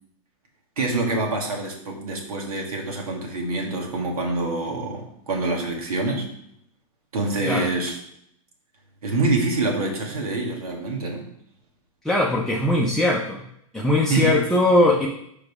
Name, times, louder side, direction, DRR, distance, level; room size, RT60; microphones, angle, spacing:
voice 1, 0.8-6.3 7.1-8.0 9.0-11.3 14.1-14.4, right 2 dB, 90° right, 1 dB, 2.0 m, -26 dB
voice 2, 12.0-13.5 13.7-15.1, left 1 dB, ahead, -2 dB, 0.6 m, -20 dB
5.1 x 4.8 x 4.8 m, 0.73 s
hypercardioid pair, 135°, 18 cm